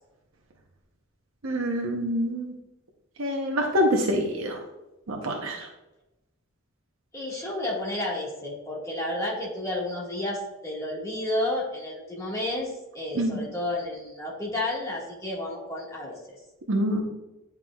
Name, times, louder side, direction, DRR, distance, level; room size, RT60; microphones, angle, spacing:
voice 1, 1.4-2.5 3.2-4.6 5.1-5.7 13.1-13.4 16.7-17.0, equal, 75° right, 0 dB, 0.8 m, -26 dB
voice 2, 7.1-16.3, left 1 dB, 15° left, -5 dB, 1.7 m, -31 dB
9.7 x 4.6 x 2.3 m, 0.99 s
head